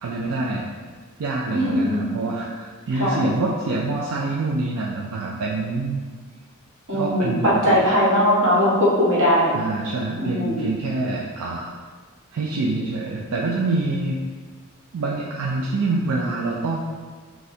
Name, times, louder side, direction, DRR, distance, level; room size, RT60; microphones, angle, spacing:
voice 1, 0.0-0.6 1.2-6.1 6.9-7.8 9.5-11.7 12.3-14.2 14.9-16.8, right 2 dB, 90° right, -3 dB, 0.4 m, -26 dB
voice 2, 1.5-2.1 2.9-3.2 6.9-9.5 10.1-10.7, equal, 65° right, -7 dB, 1.3 m, -20 dB
6.2 x 2.3 x 2.7 m, 1.5 s
head